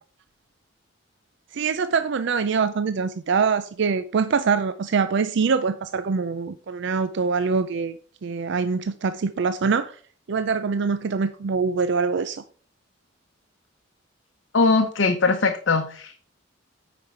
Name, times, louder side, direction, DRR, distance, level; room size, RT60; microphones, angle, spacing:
voice 1, 1.5-8.0 8.2-10.0 10.3-12.4, right 5 dB, 65° right, 0.5 m, -24 dB
voice 2, 14.5-16.3, left 4 dB, 70° left, 0.9 m, -21 dB
9.3 x 5.2 x 4.5 m
head